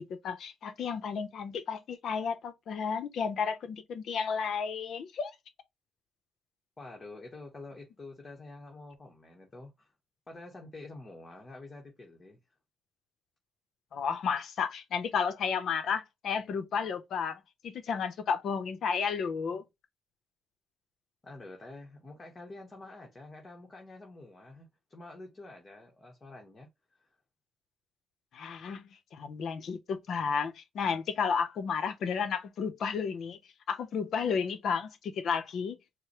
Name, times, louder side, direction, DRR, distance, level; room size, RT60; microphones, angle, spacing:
voice 1, 0.0-5.3 13.9-19.6 28.3-33.4 33.7-35.8, left 6 dB, 65° left, 0.7 m, -32 dB
voice 2, 6.8-9.9 10.3-12.4 21.2-27.1, left 2 dB, 30° left, 1.2 m, -48 dB
4.7 x 2.1 x 3.1 m
cardioid pair, 90°, 0 cm